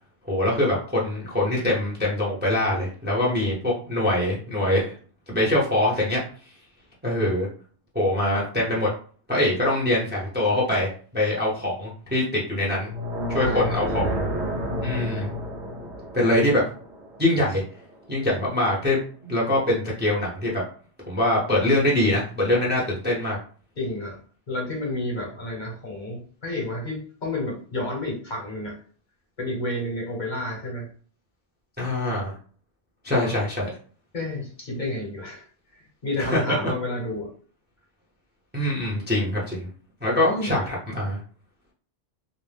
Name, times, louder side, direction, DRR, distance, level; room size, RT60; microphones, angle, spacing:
voice 1, 0.2-4.9 5.3-6.2 7.0-7.5 7.9-8.9 9.3-12.9 13.3-14.2 14.8-15.3 16.1-16.6 17.2-17.6 18.1-20.6 21.1-23.4 31.8-32.3 33.0-33.7 36.2-36.7 38.5-39.7 40.0-41.2, left 1 dB, 10° right, -4 dB, 0.6 m, -23 dB
sound 1, 12.8-18.0, equal, 85° right, 0.9 m, -30 dB
voice 2, 23.8-24.2 24.5-28.7 29.4-30.9 33.1-33.3 34.1-35.4 35.7-37.3 40.1-40.5, left 1 dB, 45° left, -1 dB, 0.9 m, -30 dB
2.5 x 2.0 x 3.3 m, 0.43 s
omnidirectional pair, 1.1 m